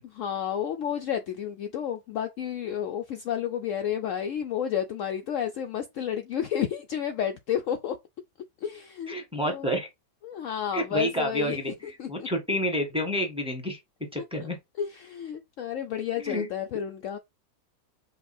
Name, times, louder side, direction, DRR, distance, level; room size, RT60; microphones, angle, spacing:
voice 1, 0.2-8.0 8.6-9.1 9.4-9.7 10.2-11.6 12.0-12.3 14.8-17.2, left 9 dB, 80° left, 0.7 m, -31 dB
voice 2, 9.1-9.9 10.7-13.8 14.1-14.6 16.2-16.5, equal, 5° right, 1.0 m, -29 dB
5.2 x 2.3 x 4.1 m
omnidirectional pair, 1.9 m